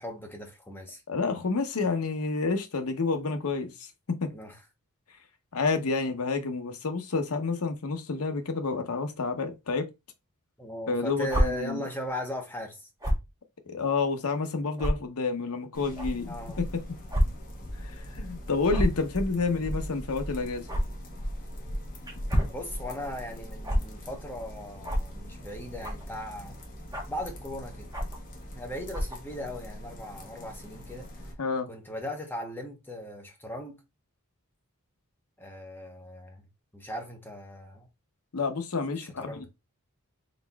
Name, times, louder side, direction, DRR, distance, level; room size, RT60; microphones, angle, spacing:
voice 1, 0.0-1.0 4.3-4.6 10.6-12.9 16.3-16.7 22.5-26.6 27.1-27.9 28.5-31.1 31.7-33.8 35.4-37.9 39.0-39.5, equal, 10° left, 0.8 m, -38 dB
voice 2, 1.1-4.3 5.5-9.9 10.9-11.8 13.7-16.7 17.7-20.7 31.4-31.7 38.3-39.5, left 4 dB, 80° left, 0.7 m, -29 dB
sound 1, 11.3-11.4 13.0-13.2 14.0-14.1 14.8-14.9 16.0-16.1 17.1-17.2 17.6-17.7 18.7-19.0 20.7-20.8 22.1-22.5 23.6-23.8 24.8-25.0 25.8-26.1 26.9-27.2 27.9-28.2 28.9-29.2, equal, 15° right, 1.1 m, -26 dB
sound 2, 15.7-31.3, equal, 40° left, 1.0 m, -40 dB
4.2 x 4.0 x 2.3 m
head